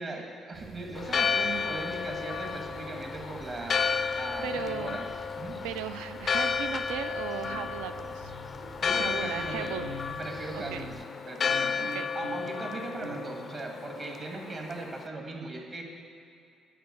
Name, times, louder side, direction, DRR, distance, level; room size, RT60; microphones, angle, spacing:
voice 1, 0.0-3.8 4.2-5.1 5.4-5.6 8.8-9.7 10.2-15.8, right 2 dB, 45° right, 2 dB, 1.6 m, -39 dB
sound 1, 0.5-11.1, right 4 dB, 25° right, 0.9 m, -48 dB
Church bell, 0.9-15.0, left 6 dB, 45° left, 0.4 m, -32 dB
voice 2, 4.4-5.0 5.6-8.3 8.9-9.9 10.5-10.9 11.8-12.1, right 10 dB, 70° right, 10 dB, 0.3 m, -37 dB
sound 2, 7.4-14.4, right 1 dB, 90° right, 1.8 m, -46 dB
10.0 x 4.6 x 7.8 m, 2.5 s
figure-of-eight pair, 45°, 0 cm